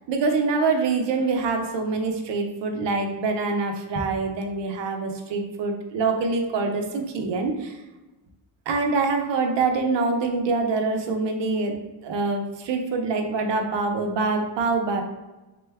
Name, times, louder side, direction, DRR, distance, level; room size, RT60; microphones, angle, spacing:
voice 1, 0.1-7.7 8.7-11.7 12.0-15.0, right 4 dB, 80° right, 3 dB, 0.7 m, -25 dB
3.6 x 2.2 x 3.4 m, 1.1 s
wide cardioid pair, 170°, 43 cm